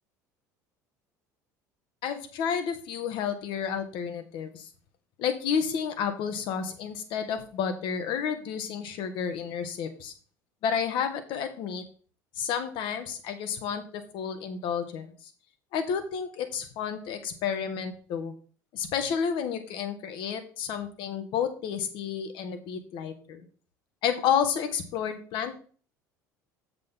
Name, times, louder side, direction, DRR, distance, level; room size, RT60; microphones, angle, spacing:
voice 1, 2.0-4.7 5.2-10.1 10.6-11.8 12.4-15.1 15.7-18.3 18.7-23.4 24.0-25.6, left 7 dB, 60° left, 8 dB, 1.5 m, -31 dB
7.8 x 6.7 x 3.8 m, 0.42 s
hypercardioid pair, 70°, 10 cm